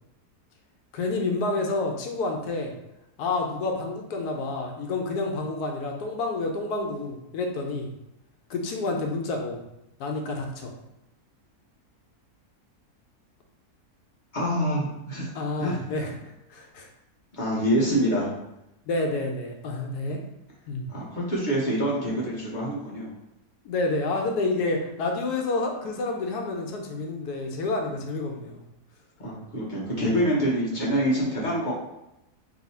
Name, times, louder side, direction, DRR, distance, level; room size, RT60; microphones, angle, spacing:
voice 1, 0.9-2.7 3.2-7.9 8.5-9.6 10.0-10.7 15.3-16.9 18.9-20.2 20.7-20.9 23.6-28.6, left 2 dB, 75° left, 2 dB, 1.1 m, -29 dB
voice 2, 14.3-15.3 15.6-15.8 17.4-18.3 20.9-23.1 29.2-31.7, equal, 40° left, -6 dB, 0.7 m, -26 dB
3.1 x 2.7 x 4.1 m, 0.88 s
omnidirectional pair, 1.7 m